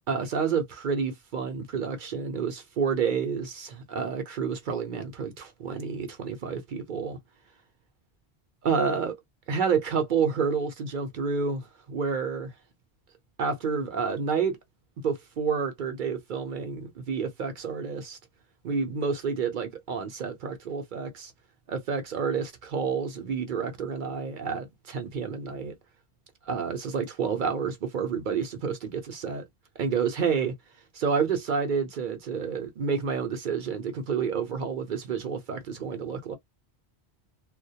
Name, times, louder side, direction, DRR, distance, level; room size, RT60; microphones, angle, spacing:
voice 1, 0.1-7.2 8.6-9.2 9.5-12.5 13.4-14.6 15.0-18.2 18.6-21.3 21.7-25.7 26.4-29.4 29.8-30.6 30.9-36.4, right 6 dB, 60° right, 0.6 m, -29 dB
2.2 x 2.1 x 2.7 m
omnidirectional pair, 1.1 m